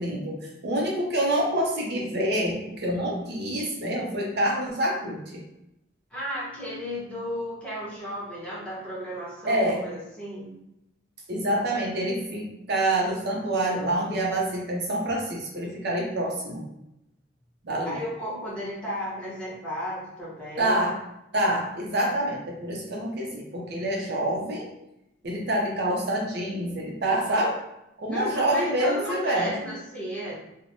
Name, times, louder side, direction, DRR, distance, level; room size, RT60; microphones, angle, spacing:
voice 1, 0.0-5.4 9.4-9.8 11.3-16.6 17.6-18.0 20.6-21.0 21.3-24.7 25.2-27.6 28.0-29.5, right 1 dB, 60° right, -1 dB, 0.6 m, -27 dB
voice 2, 6.1-10.5 17.8-20.9 28.1-30.4, equal, 5° left, -8 dB, 0.9 m, -34 dB
3.1 x 2.0 x 2.7 m, 0.87 s
head